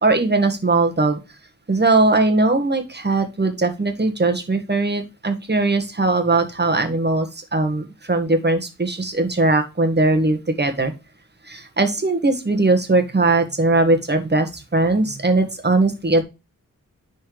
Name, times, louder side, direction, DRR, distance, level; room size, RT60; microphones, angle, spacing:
voice 1, 0.0-1.2 1.7-10.9 11.5-16.2, right 2 dB, 30° right, 6 dB, 1.7 m, -19 dB
10.0 x 4.3 x 3.3 m, 0.27 s
wide cardioid pair, 95°, 33 cm